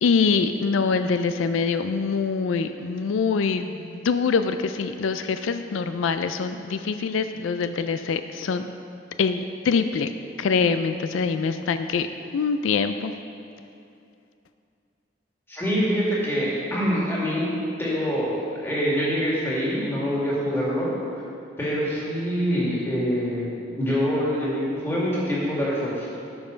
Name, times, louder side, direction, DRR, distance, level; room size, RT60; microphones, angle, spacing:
voice 1, 0.0-8.7 9.2-10.1 10.4-12.1 12.3-13.1, left 5 dB, 90° left, 9 dB, 0.4 m, -24 dB
voice 2, 15.5-17.5 17.8-20.9 21.6-23.5 23.7-26.1, equal, 10° left, -7 dB, 2.1 m, -25 dB
13.0 x 5.4 x 5.1 m, 2.6 s
head